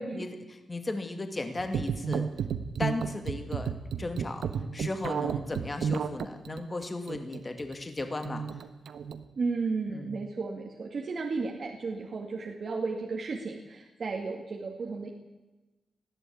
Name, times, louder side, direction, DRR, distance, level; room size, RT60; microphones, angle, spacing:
voice 1, 0.1-2.3 2.8-3.7 4.0-4.5 4.7-8.4 9.9-10.2, left 2 dB, 20° left, 7 dB, 2.3 m, -35 dB
sound 1, 1.6-9.2, right 7 dB, 80° right, 1.3 m, -32 dB
voice 2, 9.4-15.1, right 4 dB, 45° right, 1 dB, 2.2 m, -34 dB
19.5 x 15.5 x 8.7 m, 1.1 s
wide cardioid pair, 160°, 0 cm